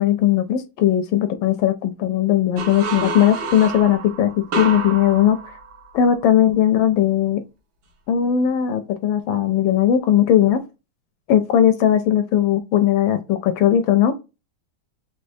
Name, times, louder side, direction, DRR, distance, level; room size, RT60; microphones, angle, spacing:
voice 1, 0.0-5.4 5.9-7.4 8.1-10.6 11.3-14.1, left 10 dB, 75° left, 1.2 m, -18 dB
sound 1, 2.6-6.2, right 4 dB, 65° right, 1.4 m, -29 dB
4.1 x 3.5 x 2.7 m
omnidirectional pair, 2.4 m